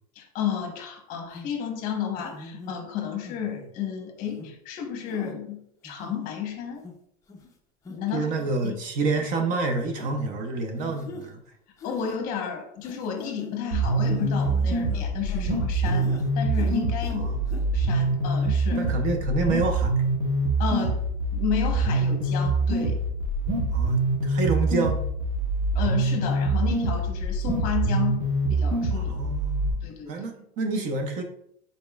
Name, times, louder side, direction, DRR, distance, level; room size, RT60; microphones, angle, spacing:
voice 1, 0.2-6.8 7.9-8.3 8.6-8.8 11.8-17.3 17.6-18.9 20.6-21.0 21.3-23.0 25.7-28.2 28.5-29.2 29.8-30.1, left 8 dB, 45° left, 3 dB, 0.9 m, -32 dB
sound 1, 1.3-1.5 2.2-2.7 3.2-3.7 4.3-4.5 5.1-5.3 5.8-6.3 6.8-6.9 7.3-7.5 7.8-8.0 8.4-8.7 9.1-9.2 10.0-10.1 10.8-11.3 11.8-12.2 12.8-13.5 14.0-15.5 15.8-16.3 16.5-17.2 17.5-17.6, left 2 dB, 15° left, 0.5 m, -41 dB
voice 2, 8.1-11.4 17.1-17.5 18.8-19.9 23.7-25.0 28.9-29.8 30.1-31.2, right 3 dB, 40° right, 5 dB, 0.6 m, -28 dB
sound 2, 13.7-29.7, right 2 dB, 60° right, 1.2 m, -25 dB
5.1 x 4.1 x 2.3 m, 0.73 s
cardioid pair, 165°, 21 cm